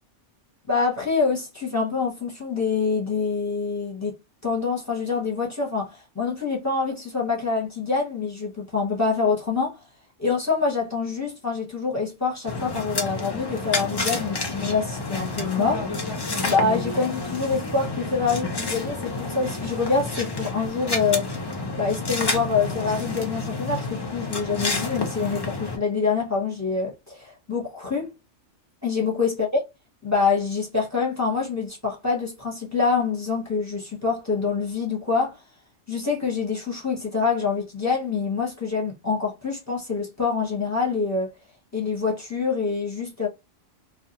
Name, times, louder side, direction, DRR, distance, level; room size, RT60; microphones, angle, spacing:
voice 1, 0.7-9.8 10.2-15.8 16.4-21.3 21.8-28.1 28.8-29.6 30.0-35.4 35.9-41.3 41.7-43.3, left 4 dB, 15° left, 0.7 m, -26 dB
sound 1, 12.5-25.8, left 3 dB, 40° left, 0.3 m, -29 dB
2.4 x 2.2 x 2.8 m
omnidirectional pair, 1.3 m